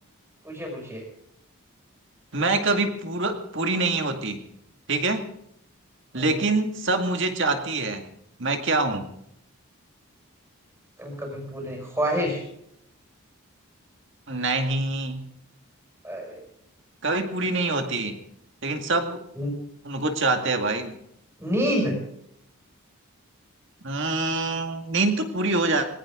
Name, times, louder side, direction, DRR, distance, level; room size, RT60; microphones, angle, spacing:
voice 1, 0.4-1.0 6.1-6.4 11.0-12.4 16.0-16.4 19.3-19.5 21.4-21.9, equal, 10° right, 0 dB, 6.2 m, -28 dB
voice 2, 2.3-4.4 4.9-5.3 6.1-8.0 8.4-9.1 14.3-15.3 17.0-18.1 18.6-19.2 19.8-21.0 23.8-25.8, right 3 dB, 55° right, 5 dB, 2.2 m, -25 dB
20.5 x 18.0 x 3.8 m, 0.73 s
head